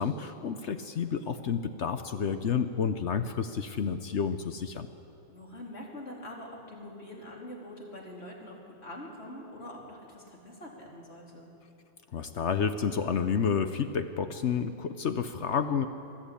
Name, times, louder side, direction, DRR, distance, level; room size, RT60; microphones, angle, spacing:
voice 1, 0.0-4.9 12.1-15.9, left 6 dB, 70° left, 9 dB, 0.6 m, -30 dB
voice 2, 5.3-11.5, left 1 dB, 30° left, -2 dB, 3.4 m, -44 dB
22.5 x 13.5 x 8.6 m, 2.8 s
omnidirectional pair, 2.2 m